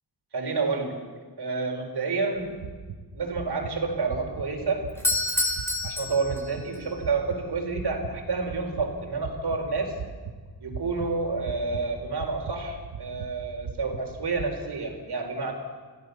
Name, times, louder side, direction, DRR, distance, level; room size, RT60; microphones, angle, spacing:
voice 1, 0.3-1.1 1.4-2.6 3.1-4.9 5.8-10.0 10.6-15.5, right 4 dB, 60° right, 3 dB, 4.5 m, -29 dB
sound 1, 2.4-14.4, right 6 dB, 90° right, 1.8 m, -40 dB
Doorbell, 4.9-6.8, left 2 dB, 5° left, 4.2 m, -28 dB
27.0 x 16.0 x 7.0 m, 1.5 s
wide cardioid pair, 115°, 44 cm